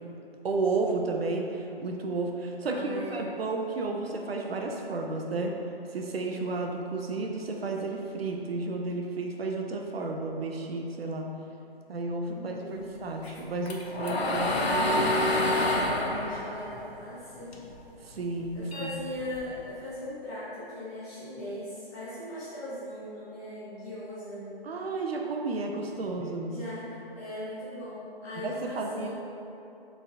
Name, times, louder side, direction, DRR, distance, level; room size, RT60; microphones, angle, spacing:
voice 1, 0.4-5.6 5.9-11.3 11.9-12.6 13.0-14.6 18.0-18.9 24.6-26.6 28.4-29.1, right 3 dB, 75° right, 1 dB, 0.5 m, -32 dB
voice 2, 2.6-3.3 12.3-12.8 15.7-17.5 18.5-24.5 26.5-26.8 27.2-29.1, left 1 dB, 15° left, -14 dB, 1.2 m, -39 dB
sound 1, 13.2-17.8 18.1-19.7, left 1 dB, 90° left, 0.7 m, -28 dB
4.2 x 3.3 x 2.6 m, 2.7 s
figure-of-eight pair, 160°, 30 cm